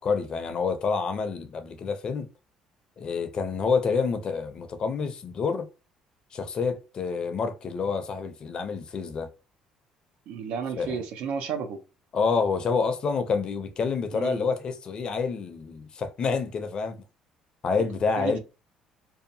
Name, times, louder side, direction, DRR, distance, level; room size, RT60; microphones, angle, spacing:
voice 1, 0.0-2.3 3.0-5.7 6.3-9.3 10.8-11.0 12.1-17.0 17.6-18.4, left 5 dB, 45° left, 0.5 m, -28 dB
voice 2, 10.3-11.8 14.1-14.5 18.2-18.4, right 6 dB, 80° right, 0.5 m, -32 dB
2.7 x 2.2 x 2.6 m
cardioid pair, 105°, 2 cm